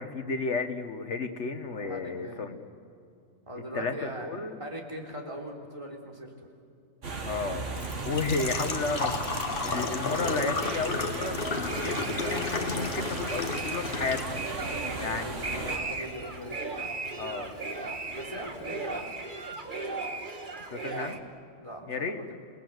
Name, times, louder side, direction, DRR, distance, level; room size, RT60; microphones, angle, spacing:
voice 1, 0.0-2.6 3.7-4.6 7.2-7.7 8.0-9.1 9.6-14.4 15.0-15.8 17.2-17.6 20.7-21.2 21.9-22.2, left 4 dB, 75° left, 7 dB, 1.9 m, -33 dB
voice 2, 1.7-2.5 3.5-4.3 4.6-6.5 8.4-8.8 14.6-16.6 18.1-19.2 21.6-22.3, equal, 25° right, 1 dB, 3.5 m, -41 dB
sound 1, 7.0-15.8, right 3 dB, 90° right, 2.2 m, -36 dB
Engine / Trickle dribble / Fill (with liquid), 7.1-19.0, left 3 dB, 50° left, 1.6 m, -35 dB
sound 2, 11.7-21.2, right 3 dB, 45° right, 1.8 m, -37 dB
28.5 x 19.0 x 8.0 m, 2.5 s
omnidirectional pair, 1.2 m